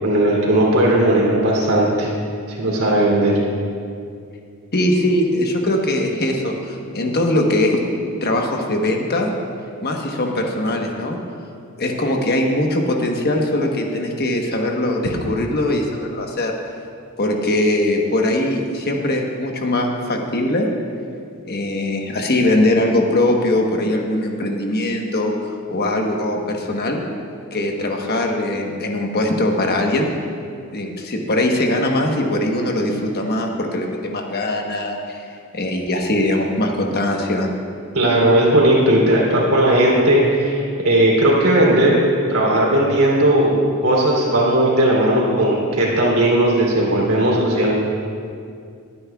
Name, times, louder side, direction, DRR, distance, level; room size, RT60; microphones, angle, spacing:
voice 1, 0.0-2.1 2.5-3.3 37.9-42.0 42.3-43.5 43.8-47.7, right 1 dB, 75° right, -4 dB, 3.1 m, -16 dB
voice 2, 4.7-7.8 8.2-9.3 9.8-11.2 11.8-16.5 17.2-20.7 21.5-27.0 27.5-30.1 30.7-35.3 35.5-37.5, left 1 dB, 45° left, 2 dB, 1.2 m, -21 dB
21.5 x 9.7 x 2.4 m, 2.3 s
head